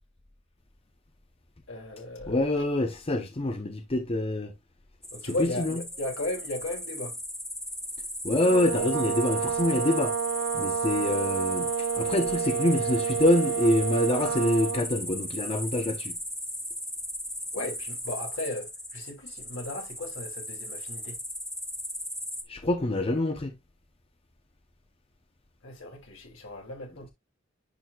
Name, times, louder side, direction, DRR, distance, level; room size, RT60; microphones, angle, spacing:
voice 1, 1.7-2.5 5.1-7.2 17.5-21.2 25.6-27.1, left 2 dB, 70° left, 2.5 m, -36 dB
voice 2, 2.3-4.5 5.2-5.8 8.2-10.1 10.5-11.7 12.0-16.1 22.5-23.5, left 1 dB, 30° left, 0.7 m, -26 dB
sound 1, 5.0-22.4, left 1 dB, 5° left, 1.0 m, -37 dB
sound 2, 8.3-14.9, right 7 dB, 65° right, 0.4 m, -29 dB
10.5 x 4.2 x 2.3 m
head